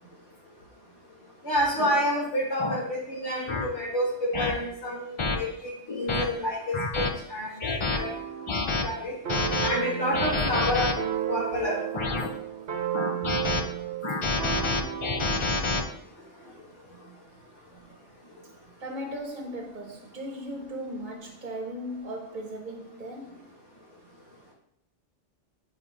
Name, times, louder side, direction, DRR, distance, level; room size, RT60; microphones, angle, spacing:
voice 1, 1.4-8.1 8.8-9.1 9.6-10.9 11.3-11.8, equal, 70° left, 2.7 m, -29 dB
sound 1, 1.8-1.9 2.6-2.8 3.5-3.6 4.3-4.5 5.2-5.4 5.9-6.2 6.7-7.1 7.6-8.0 8.5-8.8 9.3-9.7 10.1-10.9 11.6-12.3 12.9-13.6 14.0-15.8, left 3 dB, 35° left, 0.5 m, -28 dB
sound 2, 8.0-8.6 9.3-15.5, right 11 dB, 65° right, 1.2 m, -33 dB
voice 2, 18.8-23.5, equal, 45° right, 1.1 m, -37 dB
7.3 x 2.9 x 4.9 m
omnidirectional pair, 1.2 m